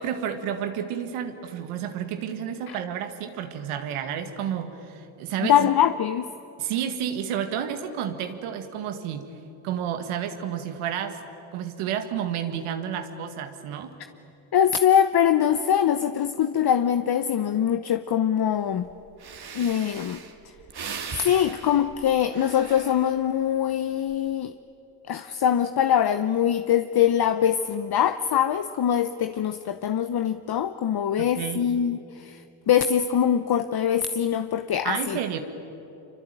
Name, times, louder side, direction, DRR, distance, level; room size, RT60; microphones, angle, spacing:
voice 1, 0.0-5.7 6.6-9.3 9.6-11.2 11.5-13.9 31.2-31.6 34.8-35.4, right 9 dB, 90° right, 7 dB, 1.9 m, -31 dB
voice 2, 5.4-6.3 14.5-18.9 19.5-20.2 21.1-24.5 25.1-35.2, left 9 dB, 50° left, 10 dB, 1.0 m, -23 dB
Breathing, 18.9-19.0 19.2-23.4 23.9-24.3, right 6 dB, 50° right, 2.6 m, -39 dB
25.5 x 24.5 x 9.1 m, 3.0 s
supercardioid pair, 65°, 49 cm